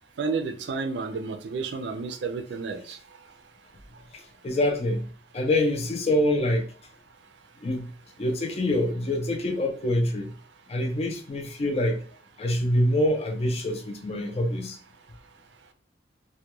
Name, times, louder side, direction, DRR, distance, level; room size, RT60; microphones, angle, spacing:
voice 1, 0.2-3.0, right 4 dB, 65° right, 0.4 m, -31 dB
voice 2, 4.1-5.1 5.3-6.7 7.6-7.9 8.2-10.3 10.7-12.0 12.4-14.8, left 1 dB, 35° left, 0.4 m, -25 dB
2.3 x 2.2 x 2.9 m
head